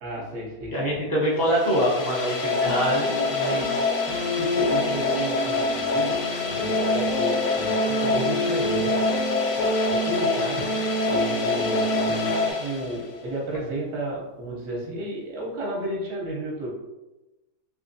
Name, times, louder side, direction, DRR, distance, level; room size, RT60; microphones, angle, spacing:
voice 1, 0.0-0.9 4.4-9.0 9.8-10.7 11.0-16.7, right 1 dB, 55° right, -2 dB, 1.1 m, -32 dB
voice 2, 0.7-3.8, equal, 35° right, -7 dB, 0.3 m, -25 dB
sound 1, 1.4-13.3, left 4 dB, 75° left, 1.2 m, -26 dB
sound 2, 2.6-12.5, right 2 dB, 30° left, 0.6 m, -29 dB
3.3 x 3.3 x 2.6 m, 1.0 s
omnidirectional pair, 1.8 m